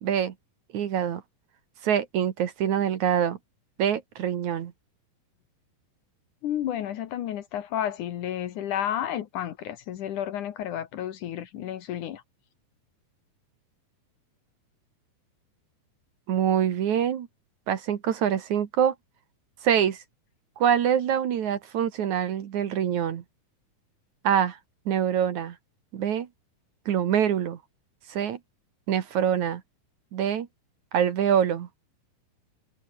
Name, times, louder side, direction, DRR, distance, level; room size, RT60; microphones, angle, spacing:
voice 1, 0.0-0.3 0.7-1.2 1.8-3.4 3.8-4.7 16.3-17.3 17.7-18.9 19.6-20.0 20.6-23.2 24.2-24.6 24.9-25.6 25.9-26.3 26.9-27.6 28.1-28.4 28.9-29.6 30.1-30.5 30.9-31.7, right 9 dB, 60° right, 2.6 m, -25 dB
voice 2, 6.4-12.2, left 10 dB, 65° left, 2.5 m, -31 dB
omnidirectional pair, 4.2 m